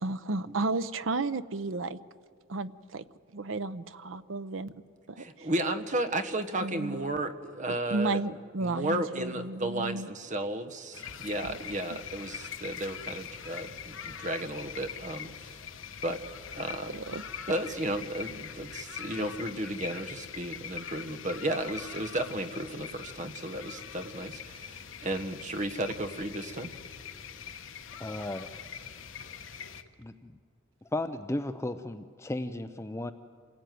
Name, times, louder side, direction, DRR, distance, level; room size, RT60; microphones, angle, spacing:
voice 1, 0.0-2.0 2.5-3.0 3.3-4.7 5.1-5.5 6.6-7.2 7.9-10.1 11.4-11.6 11.9-12.0 16.7-17.2, right 3 dB, 70° right, 13 dB, 0.8 m, -33 dB
voice 2, 5.2-8.2 8.6-15.3 16.0-16.2 16.5-16.9 17.5-26.7, right 1 dB, 40° right, 9 dB, 1.3 m, -33 dB
sound 1, 10.9-29.8, left 7 dB, 70° left, 1.2 m, -43 dB
voice 3, 28.0-28.5 30.0-30.3 30.9-33.1, left 1 dB, 15° left, 9 dB, 0.6 m, -34 dB
27.0 x 18.0 x 9.3 m, 2.2 s
head